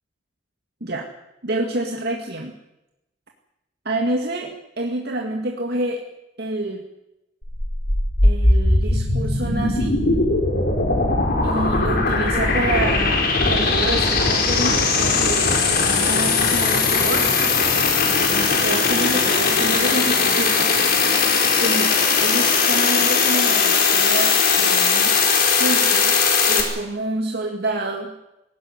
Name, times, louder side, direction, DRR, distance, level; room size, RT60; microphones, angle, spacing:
voice 1, 1.4-2.6 3.8-6.0 6.4-6.8 8.2-10.0 11.4-17.3 18.1-20.7 21.6-25.2 25.6-26.2 26.5-28.1, right 1 dB, 60° right, 2 dB, 2.3 m, -28 dB
sound 1, 7.4-26.6, left 4 dB, 55° left, 4.8 m, -19 dB
19.5 x 17.0 x 9.7 m, 0.91 s
head